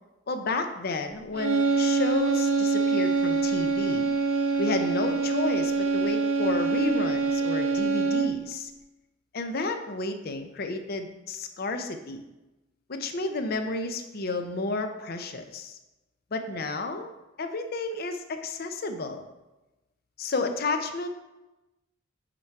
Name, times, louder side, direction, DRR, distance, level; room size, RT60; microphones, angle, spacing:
voice 1, 0.3-4.1 4.6-8.7 9.3-12.2 12.9-15.8 16.3-17.1 17.4-19.2 20.2-21.1, left 3 dB, 50° left, 7 dB, 0.5 m, -31 dB
sound 1, 1.3-8.5, right 4 dB, 80° right, 0.7 m, -25 dB
6.0 x 4.6 x 4.4 m, 1.0 s
head